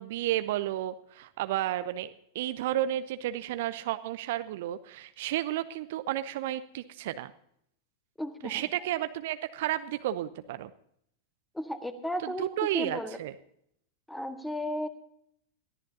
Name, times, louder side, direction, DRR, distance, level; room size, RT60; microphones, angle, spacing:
voice 1, 0.0-7.3 8.4-10.7 12.2-13.3, right 13 dB, 55° right, 12 dB, 0.7 m, -32 dB
voice 2, 8.2-8.7 11.5-12.5 12.7-13.2 14.1-14.9, left 1 dB, 5° left, 8 dB, 1.6 m, -34 dB
22.0 x 14.5 x 2.8 m, 0.71 s
figure-of-eight pair, 90°, 0 cm